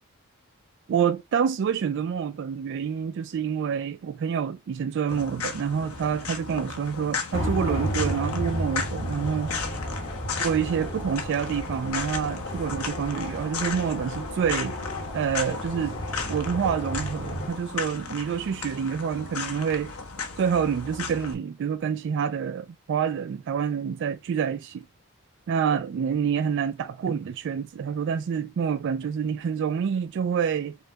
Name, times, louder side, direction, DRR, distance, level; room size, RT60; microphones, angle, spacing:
voice 1, 0.9-9.5 10.4-14.8 15.1-16.0 16.3-19.9 20.4-24.9 25.5-30.8, right 7 dB, 55° right, 0.3 m, -27 dB
sound 1, 5.1-21.3, left 5 dB, 80° left, 1.0 m, -35 dB
sound 2, 7.3-17.5, equal, 65° left, 1.7 m, -32 dB
5.5 x 2.2 x 3.9 m
head